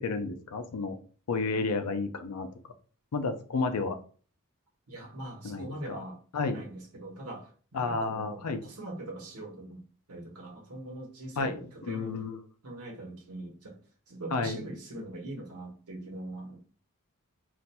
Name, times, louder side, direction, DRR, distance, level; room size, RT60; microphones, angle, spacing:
voice 1, 0.0-1.0 1.3-2.5 3.1-4.0 5.4-6.0 6.3-6.6 7.7-8.6 11.4-12.4 14.3-14.6, left 4 dB, 90° left, 8 dB, 0.5 m, -31 dB
voice 2, 4.9-6.2 6.5-9.8 10.1-12.2 12.6-13.8 14.1-16.6, right 1 dB, 80° right, 0 dB, 1.0 m, -42 dB
4.1 x 2.5 x 2.2 m, 0.41 s
head